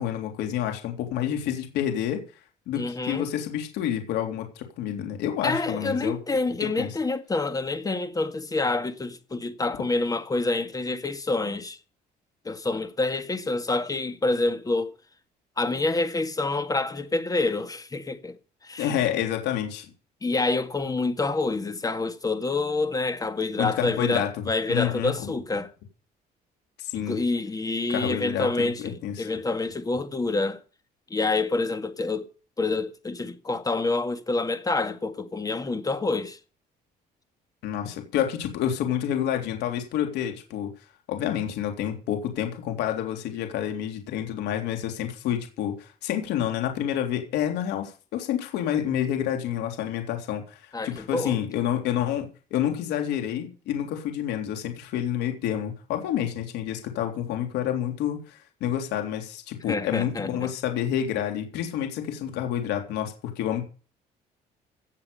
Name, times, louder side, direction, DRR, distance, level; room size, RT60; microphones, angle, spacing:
voice 1, 0.0-2.2 2.7-6.2 6.6-6.9 18.8-19.9 23.6-24.3 24.7-25.3 26.8-27.2 27.9-29.3 37.6-40.7 41.1-63.8, left 10 dB, 85° left, 3.5 m, -29 dB
voice 2, 2.7-3.3 5.4-11.8 12.5-14.9 15.6-18.4 18.6-18.9 20.2-25.7 26.9-30.6 31.1-32.3 32.6-36.4 50.7-51.4 59.7-60.5, left 3 dB, 20° left, 1.9 m, -27 dB
16.5 x 7.5 x 7.0 m
cardioid pair, 110°, 17 cm